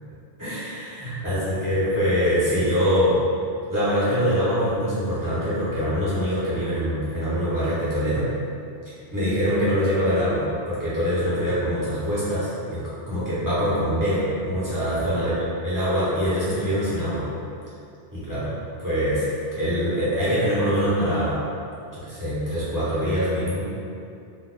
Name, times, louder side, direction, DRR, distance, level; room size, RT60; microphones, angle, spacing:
voice 1, 0.4-3.2 3.7-8.3 9.1-15.4 15.6-17.2 18.1-18.5 18.8-19.3 19.6-21.4 21.9-23.7, equal, 20° right, -13 dB, 0.9 m, -24 dB
2.5 x 2.4 x 3.7 m, 2.5 s
omnidirectional pair, 1.2 m